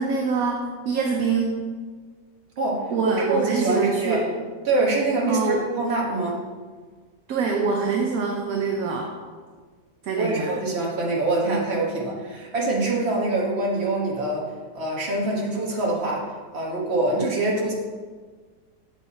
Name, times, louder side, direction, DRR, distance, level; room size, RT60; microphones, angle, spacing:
voice 1, 0.0-1.6 2.9-4.2 5.3-5.6 7.3-9.1 10.0-10.5, right 4 dB, 65° right, 1 dB, 1.1 m, -25 dB
voice 2, 2.6-4.2 4.6-6.4 10.1-14.4 14.7-16.3 16.5-17.7, right 2 dB, 40° right, -3 dB, 1.6 m, -24 dB
7.1 x 5.5 x 4.1 m, 1.5 s
omnidirectional pair, 1.7 m